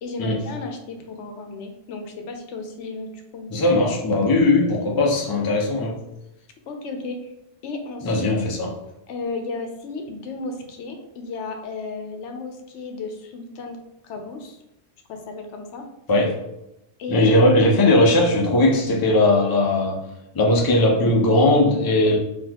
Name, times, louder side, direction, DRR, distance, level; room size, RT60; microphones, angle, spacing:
voice 1, 0.0-3.7 6.7-7.3 7.6-8.2 9.1-13.8 14.0-14.6 15.1-15.8 17.0-17.3, left 3 dB, 90° left, 5 dB, 0.9 m, -34 dB
voice 2, 3.5-6.0 8.0-8.7 16.1-16.4 17.1-20.0 20.3-22.2, left 2 dB, 25° left, -1 dB, 0.5 m, -18 dB
3.9 x 2.9 x 2.9 m, 0.89 s
omnidirectional pair, 1.2 m